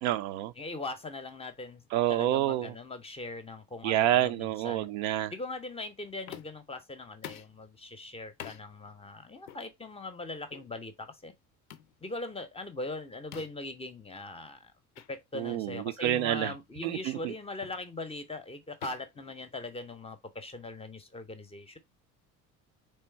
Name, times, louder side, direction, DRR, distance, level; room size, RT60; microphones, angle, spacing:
voice 1, 0.0-0.5 1.9-2.7 3.8-5.3 15.3-16.5 16.8-17.1, right 13 dB, 55° right, 0.5 m, -28 dB
voice 2, 0.6-4.9 5.3-11.3 12.0-14.7 15.1-21.8, left 2 dB, 15° left, 0.7 m, -40 dB
sound 1, 6.3-6.7 7.2-7.6 8.4-8.6 9.5-9.7 10.5-10.7 11.7-11.9 13.3-13.7 14.9-15.1 15.5-15.7 16.4-16.7 17.6-17.9 18.8-20.0, left 11 dB, 75° left, 0.5 m, -46 dB
3.7 x 3.3 x 4.3 m
figure-of-eight pair, 55°, 43 cm